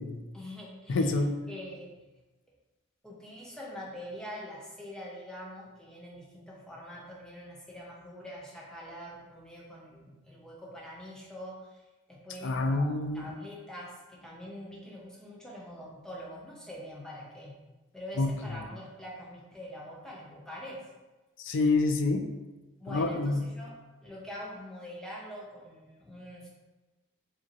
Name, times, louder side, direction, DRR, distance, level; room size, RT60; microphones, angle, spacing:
voice 1, 0.3-1.1 1.5-2.0 3.0-11.8 12.1-17.6 17.9-20.9 22.8-26.5, equal, 5° left, -5 dB, 0.7 m, -44 dB
voice 2, 0.9-1.4 12.4-13.3 18.2-18.3 21.4-22.3 22.9-23.4, left 3 dB, 65° left, 7 dB, 0.4 m, -27 dB
4.8 x 2.8 x 3.0 m, 1.1 s
head